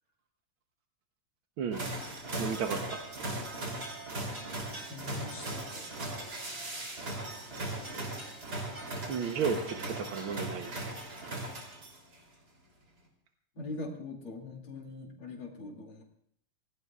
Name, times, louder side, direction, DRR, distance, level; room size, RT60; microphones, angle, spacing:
sound 1, 1.7-12.1, right 1 dB, 45° right, 3.7 m, -38 dB
voice 1, 2.4-3.0 9.1-11.0, right 6 dB, 70° right, 4 dB, 1.8 m, -33 dB
voice 2, 4.9-5.9 13.6-16.0, left 3 dB, 80° left, 1 dB, 3.6 m, -42 dB
27.5 x 17.5 x 2.4 m, 0.62 s
omnidirectional pair, 2.4 m